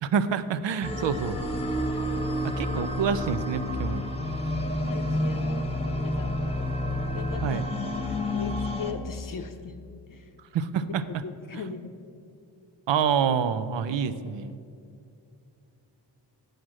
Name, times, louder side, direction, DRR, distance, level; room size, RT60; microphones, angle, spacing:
voice 1, 0.0-1.4 2.4-4.0 7.4-7.6 10.5-11.0 12.9-14.6, right 7 dB, 70° right, 13 dB, 0.6 m, -27 dB
sound 1, 0.8-8.9, left 1 dB, 15° left, 1.0 m, -29 dB
voice 2, 4.8-6.4 7.1-7.6 8.1-10.3 11.2-11.9, left 5 dB, 45° left, 7 dB, 0.7 m, -39 dB
7.9 x 6.5 x 7.4 m, 2.5 s
cardioid pair, 50°, 46 cm